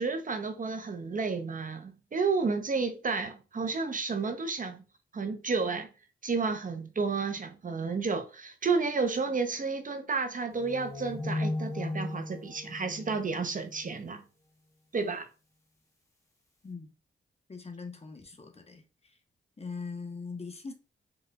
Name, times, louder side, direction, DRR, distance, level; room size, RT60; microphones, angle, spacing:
voice 1, 0.0-4.8 5.1-5.9 6.2-14.2 14.9-15.3, right 4 dB, 40° right, 0.6 m, -31 dB
sound 1, 10.5-13.9, left 2 dB, 15° left, 1.1 m, -36 dB
voice 2, 17.5-19.2 19.6-20.7, left 4 dB, 30° left, 0.8 m, -41 dB
3.9 x 3.3 x 2.2 m
cardioid pair, 60°, 21 cm